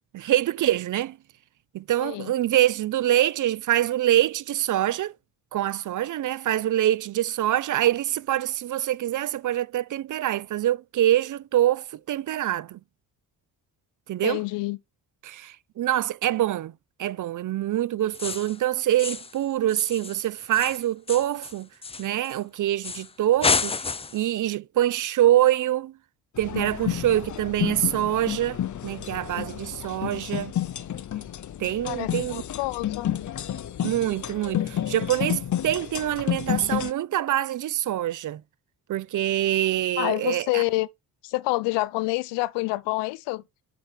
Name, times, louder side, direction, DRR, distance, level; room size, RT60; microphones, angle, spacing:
voice 1, 0.1-1.2 1.7-5.1 5.5-12.8 14.1-14.4 15.2-16.7 17.0-21.7 22.0-25.9 26.4-30.5 31.6-32.4 33.8-38.4 38.9-40.6, right 13 dB, 50° right, 0.5 m, -25 dB
voice 2, 2.0-2.3 14.2-14.8 31.8-33.1 40.0-40.9 41.2-43.4, left 21 dB, 85° left, 0.6 m, -27 dB
sound 1, 18.1-18.6 19.0-19.4 19.7-22.4 22.8-23.1 23.4-24.3, left 4 dB, 15° left, 0.5 m, -29 dB
sound 2, 26.4-36.9, left 11 dB, 45° left, 0.7 m, -30 dB
8.0 x 5.1 x 3.4 m
supercardioid pair, 60°, 42 cm